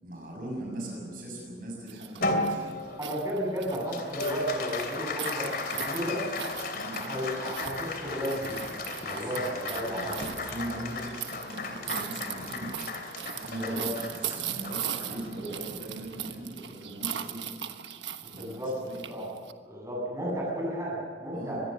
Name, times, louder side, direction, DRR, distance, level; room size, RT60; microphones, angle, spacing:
voice 1, 0.0-2.6 6.7-7.0 9.1-9.4 9.8-13.0 13.3-17.5 18.3-19.1 21.3-21.6, right 1 dB, 50° right, -1 dB, 6.5 m, -40 dB
sound 1, 1.9-19.5, right 9 dB, 85° right, 1.3 m, -39 dB
Applause, 2.2-16.9, left 3 dB, 55° left, 2.9 m, -36 dB
voice 2, 3.0-5.5 5.7-6.2 7.0-8.6 9.0-10.1 10.5-10.6 13.6-13.9 18.4-18.7 19.1-19.2 19.7-21.6, equal, 15° right, -3 dB, 7.9 m, -33 dB
sound 2, 7.6-9.6 9.8-10.5 11.0-11.1 11.4-11.5 11.9-12.0 12.3-12.6, equal, 30° left, 4.7 m, -48 dB
25.0 x 20.5 x 6.6 m, 2.1 s
head